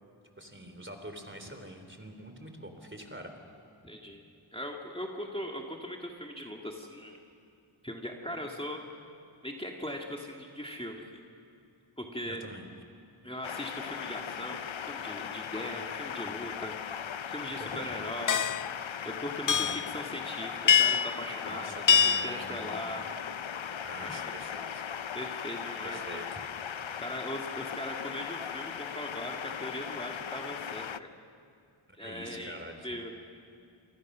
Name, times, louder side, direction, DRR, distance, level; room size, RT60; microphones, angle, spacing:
voice 1, 0.4-3.3 12.3-12.7 17.5-18.0 19.5-19.8 21.4-22.9 23.8-24.8 25.8-26.4 32.0-33.0, right 1 dB, 25° right, 6 dB, 3.4 m, -45 dB
voice 2, 3.8-4.2 4.5-7.2 7.8-8.8 9.4-11.0 12.0-12.4 13.2-18.5 19.0-23.1 24.0-24.2 25.1-26.2 27.0-31.1 32.0-33.1, equal, 10° left, 1 dB, 2.3 m, -40 dB
sound 1, 13.4-31.0, left 8 dB, 70° left, 0.8 m, -38 dB
sound 2, 18.3-18.7 19.5-19.9 20.7-21.2 21.9-22.4, left 7 dB, 40° left, 0.5 m, -23 dB
28.5 x 25.0 x 6.3 m, 2.5 s
wide cardioid pair, 45°, 48 cm